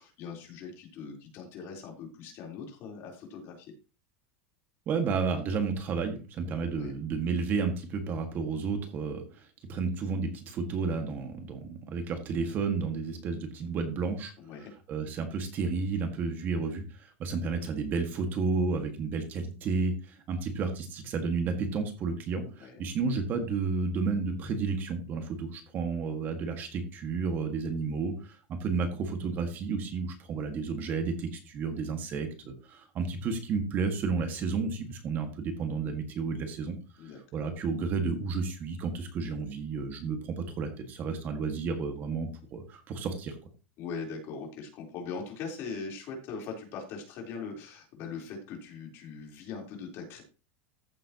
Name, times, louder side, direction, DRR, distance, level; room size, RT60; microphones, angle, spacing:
voice 1, 0.0-3.7 6.7-6.9 14.4-14.7 22.6-22.8 37.0-37.2 43.8-50.2, left 5 dB, 40° left, 0 dB, 3.7 m, -41 dB
voice 2, 4.9-14.3 14.9-36.8 37.3-43.4, right 4 dB, 30° right, 5 dB, 1.8 m, -32 dB
14.5 x 7.6 x 2.9 m, 0.33 s
supercardioid pair, 155°, 6 cm